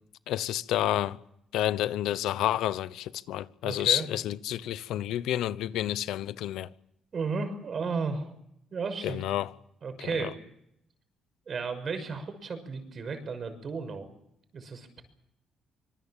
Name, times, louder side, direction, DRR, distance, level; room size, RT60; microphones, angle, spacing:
voice 1, 0.3-1.2 1.5-6.7 9.0-9.5 10.0-10.3, left 13 dB, 85° left, 0.9 m, -29 dB
voice 2, 3.6-4.1 7.1-8.3 8.7-9.2 9.8-10.4 11.5-14.1 14.5-15.0, right 4 dB, 50° right, 6.2 m, -34 dB
26.0 x 21.0 x 7.4 m
cardioid pair, 90°, 0 cm